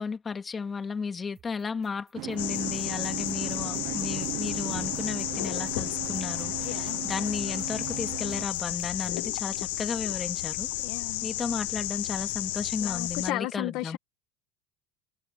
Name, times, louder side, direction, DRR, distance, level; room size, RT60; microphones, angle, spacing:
voice 1, 0.0-10.7 11.2-14.0, left 5 dB, 20° left, 2.3 m, -34 dB
sound 1, 1.3-9.1, right 10 dB, 40° right, 7.2 m, -59 dB
sound 2, 2.1-8.5, right 18 dB, 65° right, 0.9 m, -37 dB
sound 3, 2.4-13.3, left 19 dB, 85° left, 0.8 m, -32 dB
voice 2, 6.6-7.0 10.8-11.3 12.8-14.0, left 18 dB, 60° left, 1.6 m, -34 dB
supercardioid pair, 125°, 0 cm